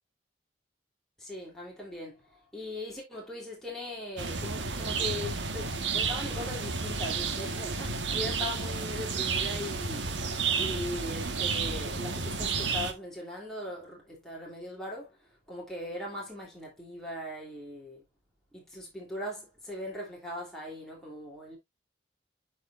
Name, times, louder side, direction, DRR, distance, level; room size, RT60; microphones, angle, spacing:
voice 1, 1.2-10.1 10.6-18.0 18.5-21.6, left 1 dB, 5° left, 3.2 m, -40 dB
sound 1, 4.2-12.9, right 5 dB, 85° right, 1.4 m, -31 dB
12.0 x 4.9 x 2.5 m
head